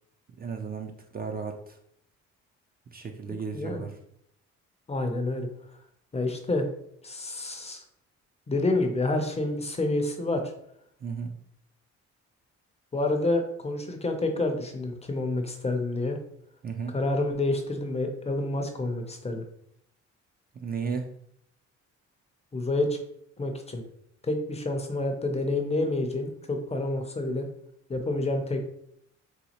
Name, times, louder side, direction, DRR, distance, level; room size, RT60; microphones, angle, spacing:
voice 1, 0.4-1.8 2.9-3.9 11.0-11.3 16.6-17.0 20.6-21.1, right 5 dB, 30° right, 4 dB, 0.4 m, -34 dB
voice 2, 4.9-5.5 6.1-6.7 7.0-7.8 8.5-10.4 12.9-16.2 16.9-19.4 22.5-23.0 23.4-23.8 24.2-27.5 27.9-28.6, left 2 dB, 20° left, 5 dB, 0.5 m, -28 dB
4.1 x 2.3 x 2.8 m, 0.71 s
cardioid pair, 90°, 30 cm